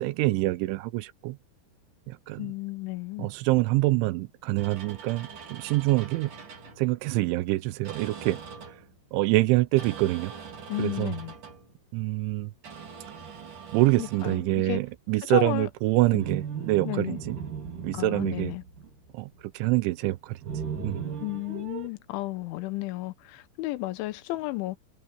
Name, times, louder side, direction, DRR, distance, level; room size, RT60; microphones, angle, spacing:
voice 1, 0.0-1.4 2.1-2.5 3.2-6.3 6.8-8.4 8.7-8.8 9.1-10.3 10.8-11.1 11.9-12.5 13.7-17.4 17.8-18.5 19.1-20.4 20.8-21.1, right 18 dB, 85° right, 3.2 m, -26 dB
voice 2, 2.4-3.3 10.7-11.4 14.0-14.8 15.3-15.7 16.1-16.2 16.9-17.2 17.9-18.6 21.2-24.8, left 18 dB, 80° left, 3.5 m, -33 dB
sound 1, 4.6-6.9 7.9-8.9 9.8-11.6 12.6-14.5 16.1-19.3 20.4-21.9, right 6 dB, 45° right, 5.9 m, -39 dB
omnidirectional pair, 5.4 m